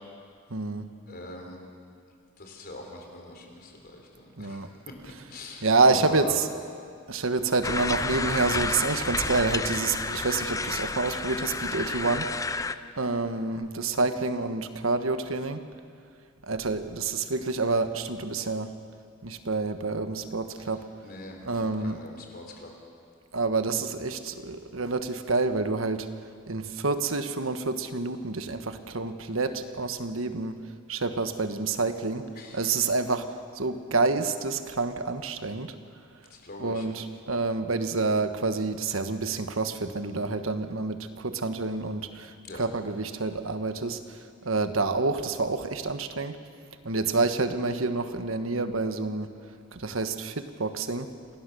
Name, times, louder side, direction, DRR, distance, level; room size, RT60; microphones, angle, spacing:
voice 1, 0.5-0.9 4.4-4.7 5.6-6.5 7.1-12.3 13.0-15.6 16.4-18.7 19.2-20.8 21.4-22.0 23.3-26.1 26.5-30.6 30.9-32.3 32.5-33.3 33.5-35.7 36.6-46.4 46.8-49.3 49.7-51.1, right 3 dB, 85° right, 9 dB, 1.3 m, -28 dB
voice 2, 1.1-1.6 2.4-4.6 5.3-6.4 21.0-21.4 21.8-22.7 32.4-32.6 36.3-36.8 42.4-42.6, left 2 dB, 50° left, 2 dB, 3.9 m, -42 dB
sound 1, 7.6-12.7, left 3 dB, 15° left, 0.5 m, -30 dB
27.0 x 18.0 x 6.9 m, 2.3 s
head